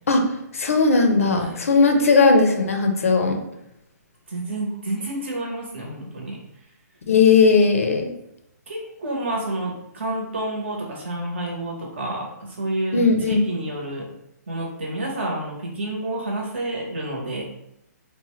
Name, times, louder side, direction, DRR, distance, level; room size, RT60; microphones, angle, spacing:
voice 1, 0.5-3.4 7.1-8.1 12.9-13.4, left 4 dB, 50° left, 4 dB, 0.5 m, -17 dB
voice 2, 1.2-1.6 1.9-2.0 4.3-6.4 8.7-14.1 14.5-17.4, right 1 dB, 40° right, -1 dB, 0.9 m, -29 dB
4.1 x 2.1 x 3.0 m, 0.80 s
hypercardioid pair, 180°, 9 cm